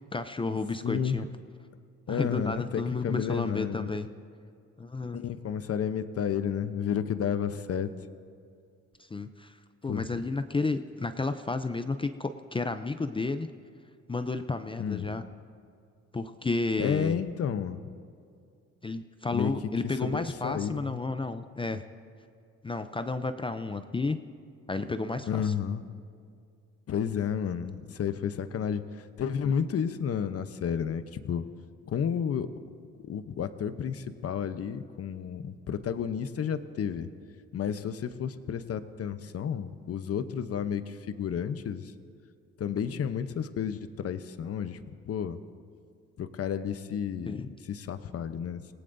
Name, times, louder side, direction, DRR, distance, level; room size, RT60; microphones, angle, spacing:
voice 1, 0.1-1.3 2.1-4.1 4.8-5.2 9.1-9.5 9.8-13.5 14.1-15.2 16.1-17.2 18.8-21.8 22.6-24.2 24.7-25.5 47.3-47.5, left 3 dB, 15° left, 9 dB, 0.5 m, -32 dB
voice 2, 0.8-1.3 2.1-3.9 5.1-7.9 9.9-10.1 14.8-15.1 16.8-17.9 19.3-19.5 20.0-21.0 25.3-25.8 26.9-28.8 29.2-31.5 31.9-32.5 33.1-37.1 37.5-41.9 42.6-44.8 45.1-45.4 46.2-48.7, left 8 dB, 50° left, 11 dB, 0.8 m, -31 dB
26.5 x 18.0 x 2.7 m, 2.3 s
cardioid pair, 90°, 30 cm